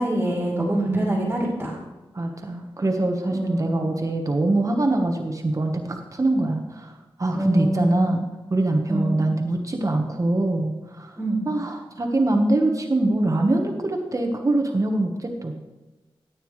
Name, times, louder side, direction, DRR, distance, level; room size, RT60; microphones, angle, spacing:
voice 1, 0.0-1.8 3.3-3.9 7.3-8.2 8.9-9.3 11.2-11.5, right 1 dB, 15° right, -4 dB, 2.8 m, -25 dB
voice 2, 0.7-1.3 2.1-6.9 7.2-8.2 8.5-11.1 11.4-15.5, right 2 dB, 35° right, 3 dB, 1.2 m, -23 dB
13.5 x 9.2 x 3.2 m, 1.1 s
wide cardioid pair, 85°, 9 cm